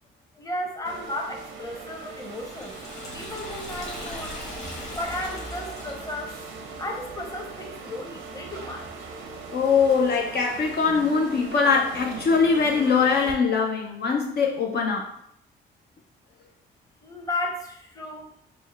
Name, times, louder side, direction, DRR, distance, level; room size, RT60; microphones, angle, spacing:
voice 1, 0.4-2.8 3.1-4.4 4.9-6.4 6.8-9.1 17.0-18.3, left 1 dB, 15° left, 1 dB, 0.8 m, -34 dB
sound 1, 0.8-13.3, right 4 dB, 90° right, 0.7 m, -40 dB
Liquid, 1.9-6.5, left 1 dB, 35° left, 1.4 m, -39 dB
voice 2, 9.5-15.1, left 5 dB, 55° left, 1 dB, 0.6 m, -22 dB
4.3 x 2.1 x 3.3 m, 0.70 s
cardioid pair, 90°, 20 cm